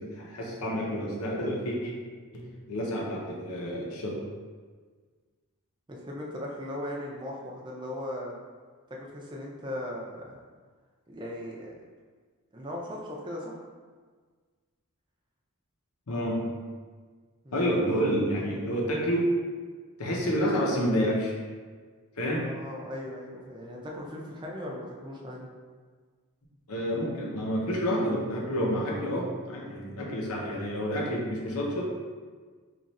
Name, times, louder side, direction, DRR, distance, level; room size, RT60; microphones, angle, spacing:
voice 1, 0.0-1.9 2.3-4.2 16.1-16.4 17.5-19.3 20.0-21.3 22.2-22.4 26.7-31.9, equal, 75° left, -2 dB, 0.8 m, -29 dB
voice 2, 5.9-8.4 8.9-10.4 11.1-11.8 12.5-13.6 17.4-17.7 22.3-25.5, left 1 dB, 20° right, -2 dB, 0.5 m, -38 dB
3.1 x 2.5 x 4.0 m, 1.5 s
head